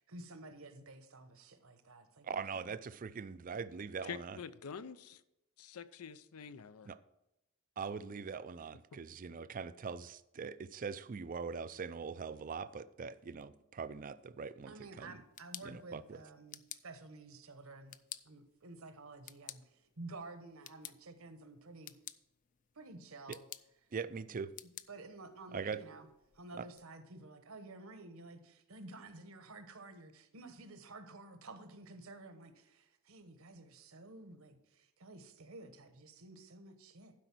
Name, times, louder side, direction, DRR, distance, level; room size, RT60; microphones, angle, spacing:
voice 1, 0.0-2.7 14.6-18.0 18.2-22.0 22.7-23.4 24.9-26.1 26.3-37.2, right 2 dB, 70° right, 1.1 m, -52 dB
voice 2, 2.2-4.4 6.9-7.0 7.8-15.1 15.6-16.2 23.3-23.4 23.9-24.5 25.5-25.8 26.6-26.7, right 5 dB, 40° right, 0.4 m, -42 dB
voice 3, 4.0-5.2 5.6-6.9, left 7 dB, 85° left, 0.6 m, -47 dB
sound 1, 15.1-26.8, left 12 dB, 35° left, 0.3 m, -54 dB
12.0 x 5.1 x 6.0 m
head